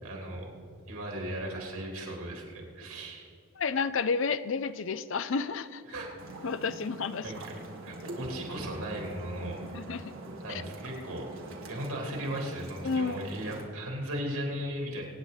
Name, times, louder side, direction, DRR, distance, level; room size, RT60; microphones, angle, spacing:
voice 1, 0.0-0.5 0.9-3.3 5.9-6.2 7.2-7.5 7.8-9.6 10.4-11.3 11.7-15.0, right 1 dB, 85° right, -1 dB, 3.3 m, -36 dB
voice 2, 3.6-5.8 6.4-7.3 9.7-10.1 10.5-10.6 12.8-13.2, left 5 dB, 60° left, 14 dB, 0.5 m, -31 dB
sound 1, 6.2-13.6, right 1 dB, 65° right, 2.1 m, -44 dB
24.5 x 9.5 x 4.1 m, 2.4 s
head